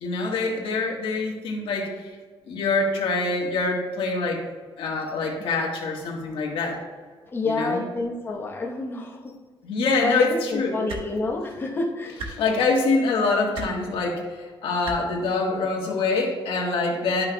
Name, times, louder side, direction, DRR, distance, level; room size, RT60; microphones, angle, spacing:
voice 1, 0.0-1.9 2.5-4.4 4.8-6.8 7.4-7.8 9.6-10.8 12.3-14.2 14.6-17.3, left 3 dB, 80° left, -1 dB, 1.5 m, -25 dB
voice 2, 7.3-9.3 10.0-12.2, left 2 dB, 25° left, -1 dB, 1.0 m, -28 dB
sound 1, 10.9-11.0 12.2-12.3 13.5-13.7 14.8-15.0 16.2-16.3, right 3 dB, 75° right, 1.2 m, -33 dB
11.5 x 5.7 x 2.3 m, 1.5 s
cardioid pair, 170°, 9 cm